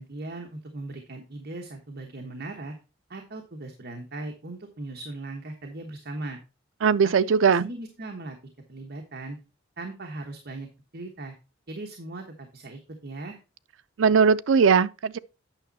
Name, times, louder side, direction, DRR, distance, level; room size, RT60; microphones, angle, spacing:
voice 1, 0.0-2.7 3.1-6.4 7.0-8.4 8.7-9.4 9.8-10.7 10.9-11.3 11.7-13.4, right 2 dB, 55° right, 1.2 m, -38 dB
voice 2, 6.8-7.7 14.0-15.2, right 6 dB, 75° right, 0.4 m, -19 dB
9.0 x 6.1 x 4.1 m
head